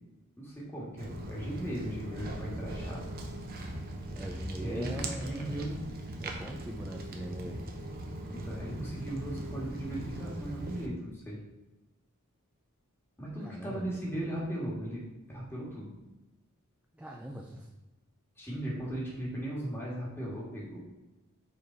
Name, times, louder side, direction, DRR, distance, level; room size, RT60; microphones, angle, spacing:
voice 1, 0.4-3.0 4.6-5.9 8.3-11.4 13.2-15.9 18.4-20.8, right 1 dB, 10° left, -5 dB, 1.7 m, -37 dB
Walk footsteps, 1.0-10.9, right 1 dB, 45° right, 0.8 m, -39 dB
voice 2, 4.2-5.6 6.2-7.6 13.4-14.0 16.9-17.7, right 1 dB, 5° right, 0 dB, 0.4 m, -42 dB
5.2 x 4.2 x 4.5 m, 1.1 s
head